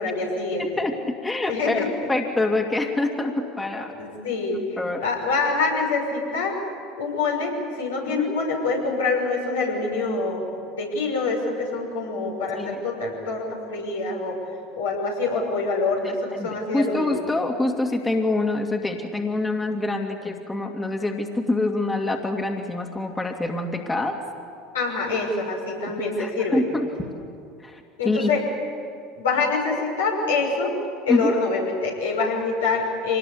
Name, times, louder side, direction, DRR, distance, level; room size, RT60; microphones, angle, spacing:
voice 1, 0.0-0.7 1.5-1.9 3.9-4.6 5.0-6.6 7.0-10.4 10.7-14.4 14.7-17.2 24.7-26.6 28.0-28.4 29.2-30.7 31.1-33.2, left 3 dB, 85° left, -2 dB, 6.2 m, -25 dB
voice 2, 0.6-3.9 4.8-5.0 8.0-8.4 12.5-12.8 16.0-16.1 16.4-24.2 26.0-26.9 27.6-28.3 31.1-31.4, left 2 dB, 15° left, 3 dB, 2.4 m, -26 dB
25.5 x 19.5 x 8.6 m, 2.5 s
hypercardioid pair, 75°, 0 cm